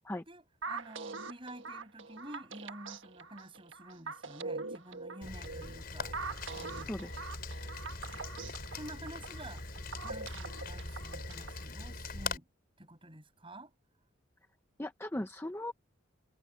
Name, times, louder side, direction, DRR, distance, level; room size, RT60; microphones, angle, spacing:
voice 1, 0.3-6.2 6.5-6.9 8.1-8.2 8.7-9.6 10.0-12.5 12.8-13.7, right 1 dB, 25° right, 7.2 m, -49 dB
sound 1, 0.6-11.6, right 4 dB, 70° right, 1.5 m, -43 dB
Rain, 5.2-12.4, left 3 dB, 50° left, 5.2 m, -42 dB
voice 2, 6.8-7.2 14.8-15.7, left 1 dB, 10° left, 0.7 m, -38 dB
head